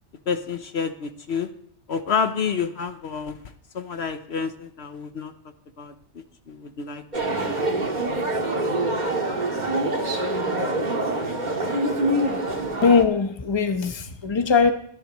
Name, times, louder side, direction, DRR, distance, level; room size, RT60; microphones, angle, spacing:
voice 1, 0.3-1.5 1.9-3.4 3.7-5.3 5.8-5.9 6.5-7.9, left 6 dB, 65° left, 8 dB, 1.1 m, -29 dB
sound 1, 7.1-13.0, right 1 dB, 40° right, 1.8 m, -25 dB
voice 2, 12.8-14.7, left 5 dB, 25° left, 7 dB, 1.0 m, -20 dB
25.5 x 10.5 x 3.1 m, 0.67 s
omnidirectional pair, 1.2 m